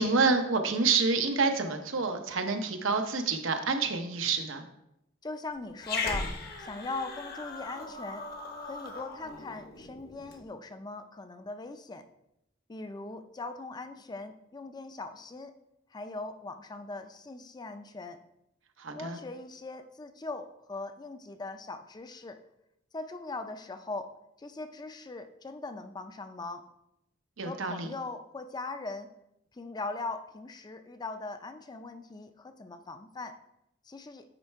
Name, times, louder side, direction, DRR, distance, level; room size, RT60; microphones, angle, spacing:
voice 1, 0.0-4.7 18.8-19.2 27.4-27.9, right 4 dB, 85° right, 6 dB, 0.8 m, -28 dB
voice 2, 5.2-6.3 6.6-8.3 8.6-12.1 12.7-15.5 15.9-18.2 18.9-22.4 22.9-26.7 27.4-29.1 29.5-33.3 33.8-34.2, left 3 dB, 20° left, 8 dB, 0.4 m, -40 dB
Growling, 5.8-10.4, left 3 dB, 50° left, 0.9 m, -38 dB
8.9 x 3.2 x 4.5 m, 0.82 s
head